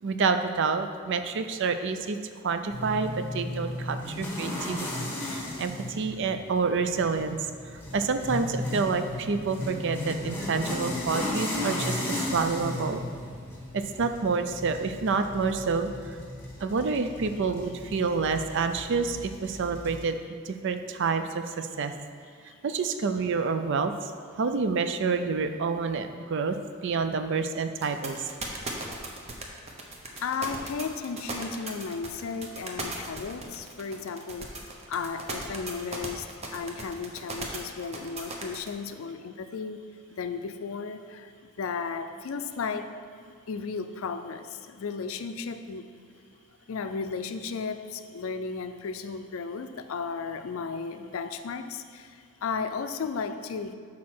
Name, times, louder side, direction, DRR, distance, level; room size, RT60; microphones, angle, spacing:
voice 1, 0.0-2.2 2.4-7.4 7.7-13.0 13.7-16.2 16.6-20.2 20.4-21.9 22.6-24.1 24.4-26.6 26.8-28.2, right 4 dB, 60° right, 9 dB, 0.4 m, -28 dB
sound 1, 2.7-20.0, left 1 dB, 10° left, 1.2 m, -35 dB
sound 2, 27.8-38.7, right 2 dB, 30° right, 0.8 m, -37 dB
voice 2, 30.2-34.5 34.9-36.3 36.5-39.8 40.2-41.3 41.6-42.9 43.5-45.8 46.7-52.1 52.4-53.7, left 5 dB, 75° left, 9 dB, 0.4 m, -34 dB
6.4 x 4.2 x 6.0 m, 2.2 s
head